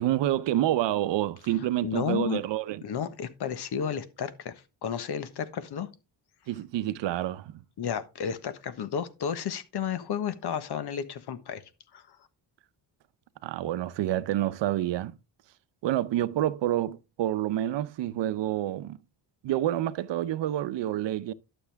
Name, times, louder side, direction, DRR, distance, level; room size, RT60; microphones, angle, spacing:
voice 1, 0.0-2.8 6.5-7.6 13.4-15.2 15.8-19.0 19.4-21.3, right 13 dB, 80° right, 0.8 m, -28 dB
voice 2, 1.8-2.4 2.8-4.5 4.8-5.9 7.8-11.6 11.9-12.2, left 8 dB, 65° left, 1.4 m, -32 dB
12.0 x 6.9 x 3.5 m
cardioid pair, 130°, 43 cm